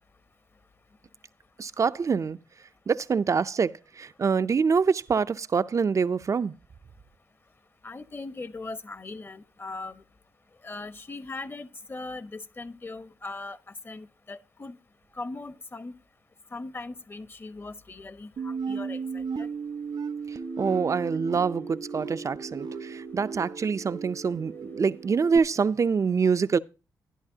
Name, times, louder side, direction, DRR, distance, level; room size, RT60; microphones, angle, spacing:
voice 1, 1.6-2.4 2.9-6.5 20.3-26.6, right 5 dB, 45° right, 0.5 m, -25 dB
voice 2, 7.8-10.0 10.6-13.6 13.8-14.8 15.2-16.0 16.5-19.5, left 3 dB, 30° left, 1.0 m, -39 dB
sound 1, 18.4-25.4, right 5 dB, 70° right, 1.0 m, -35 dB
13.0 x 11.5 x 2.8 m
cardioid pair, 60°, 7 cm